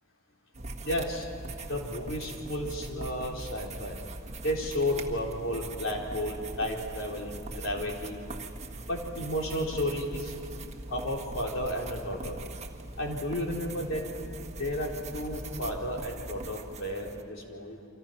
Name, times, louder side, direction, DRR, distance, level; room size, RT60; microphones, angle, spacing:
sound 1, 0.5-17.2, right 2 dB, 35° right, 1.6 m, -41 dB
voice 1, 0.8-1.3 1.7-4.0 4.4-8.2 8.9-10.3 10.9-12.4 13.0-14.0 14.6-17.8, left 1 dB, 70° left, -1 dB, 4.2 m, -32 dB
29.0 x 25.5 x 6.0 m, 2.8 s
head